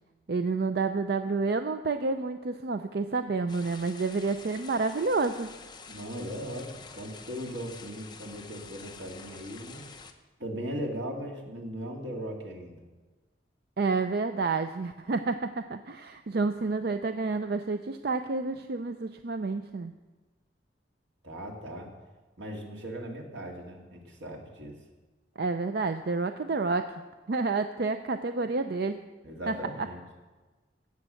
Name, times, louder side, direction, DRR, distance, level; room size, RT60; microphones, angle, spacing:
voice 1, 0.3-5.5 13.8-19.9 25.4-26.9 27.3-29.0 29.5-29.6, right 3 dB, 60° right, 9 dB, 0.5 m, -29 dB
sound 1, 3.5-10.1, left 5 dB, 25° left, 0.8 m, -48 dB
voice 2, 5.9-9.9 10.4-12.8 21.2-21.9 22.4-24.8 29.2-30.0, equal, 85° right, 1 dB, 2.3 m, -38 dB
16.5 x 7.2 x 6.4 m, 1.3 s
head